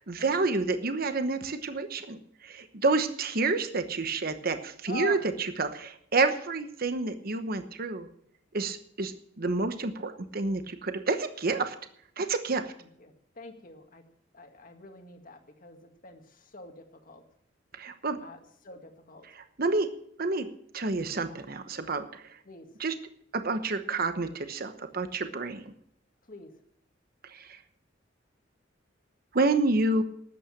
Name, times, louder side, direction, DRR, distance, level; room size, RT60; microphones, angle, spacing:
voice 1, 0.0-8.1 8.5-9.1 9.4-11.7 12.2-12.6 17.7-18.2 19.6-19.9 20.2-20.5 20.7-22.2 22.8-22.9 23.3-25.6 27.3-27.6 29.3-30.0, right 3 dB, 50° right, 9 dB, 1.0 m, -29 dB
voice 2, 4.9-5.2 12.8-14.0 14.3-17.2 18.2-19.2 22.5-22.7 26.3-26.5, left 2 dB, 45° left, 5 dB, 1.9 m, -45 dB
13.0 x 8.8 x 7.2 m, 0.68 s
head